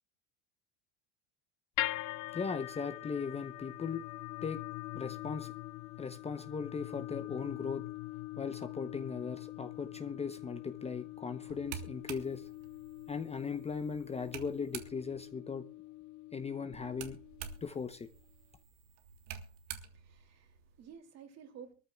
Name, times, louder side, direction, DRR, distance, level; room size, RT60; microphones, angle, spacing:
sound 1, 1.8-18.0, left 18 dB, 50° left, 0.8 m, -43 dB
voice 1, 2.3-4.0 4.4-4.6 4.9-5.5 6.0-7.8 8.4-12.5 13.1-15.7 16.3-17.2 17.6-18.1, left 5 dB, 15° left, 0.8 m, -38 dB
sound 2, 11.5-15.3 16.7-20.9, right 9 dB, 75° right, 1.8 m, -49 dB
voice 2, 19.8-21.7, right 7 dB, 45° right, 2.8 m, -53 dB
23.5 x 13.5 x 2.3 m
supercardioid pair, 110°, 37 cm